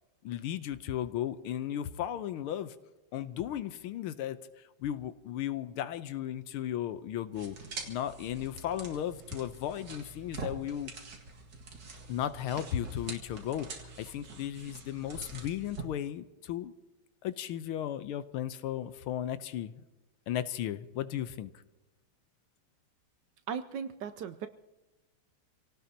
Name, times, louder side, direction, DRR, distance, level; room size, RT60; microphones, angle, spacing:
voice 1, 0.2-2.7 3.1-4.4 4.8-7.6 7.9-10.9 12.1-13.7 14.0-16.7 17.2-19.8 20.3-21.5, left 11 dB, 85° left, 12 dB, 1.6 m, -35 dB
sound 1, 7.3-15.8, right 4 dB, 55° right, 2.5 m, -45 dB
voice 2, 23.5-24.5, right 7 dB, 70° right, 9 dB, 1.1 m, -37 dB
27.0 x 18.0 x 2.8 m, 1.1 s
omnidirectional pair, 2.3 m